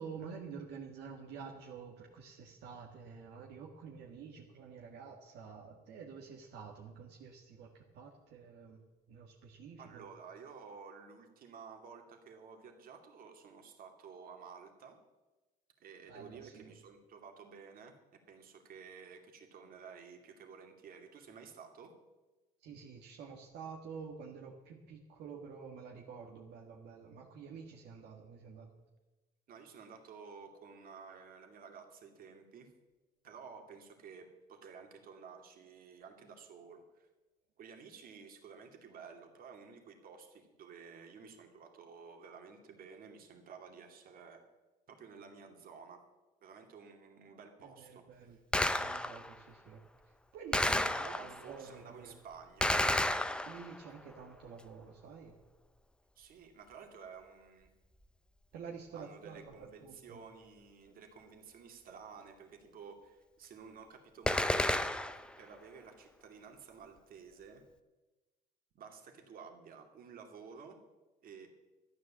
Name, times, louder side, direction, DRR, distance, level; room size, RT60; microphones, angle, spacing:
voice 1, 0.0-8.8 9.1-10.1 16.1-16.7 22.6-28.7 47.6-48.4 48.7-49.8 50.3-52.2 53.4-55.4 58.5-60.2, right 6 dB, 80° right, -1 dB, 1.7 m, -49 dB
voice 2, 9.8-15.0 15.8-21.9 29.5-32.7 33.2-37.1 37.6-44.4 44.9-46.0 46.4-48.4 50.6-52.8 56.2-57.7 58.9-64.8 65.4-67.6 68.7-70.8 71.2-71.5, right 6 dB, 60° right, 4 dB, 2.5 m, -52 dB
Gunshot gunfire, 48.5-49.3 50.5-51.5 52.6-53.9 64.3-65.3, left 1 dB, 5° left, 0.7 m, -31 dB
12.5 x 10.0 x 7.3 m, 1.1 s
cardioid pair, 110°, 17 cm